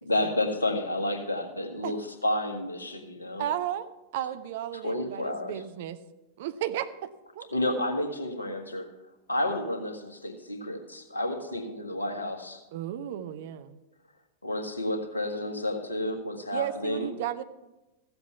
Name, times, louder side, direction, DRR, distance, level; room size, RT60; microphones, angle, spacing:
voice 1, 0.0-2.0 2.2-3.4 4.8-5.5 7.5-8.8 9.3-12.6 14.4-17.1, left 1 dB, 80° left, 4 dB, 1.6 m, -30 dB
voice 2, 3.4-6.0 6.4-7.1 7.3-7.5 12.7-13.8 16.5-17.4, right 11 dB, 55° right, 12 dB, 0.7 m, -34 dB
14.5 x 7.9 x 5.7 m, 1.0 s
figure-of-eight pair, 90°, 0 cm